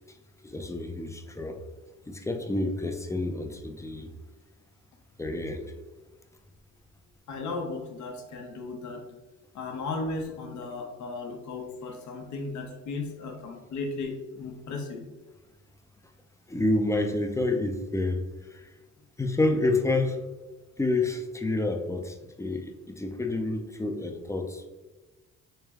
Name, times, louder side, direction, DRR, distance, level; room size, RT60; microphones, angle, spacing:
voice 1, 0.4-1.6 2.1-4.1 5.2-5.6 16.5-18.7 19.2-20.2 20.8-24.7, left 2 dB, 10° left, 5 dB, 0.4 m, -29 dB
voice 2, 7.3-9.2 9.5-15.1, left 3 dB, 70° left, 1 dB, 0.8 m, -35 dB
3.3 x 3.1 x 3.5 m, 1.1 s
cardioid pair, 90°, 30 cm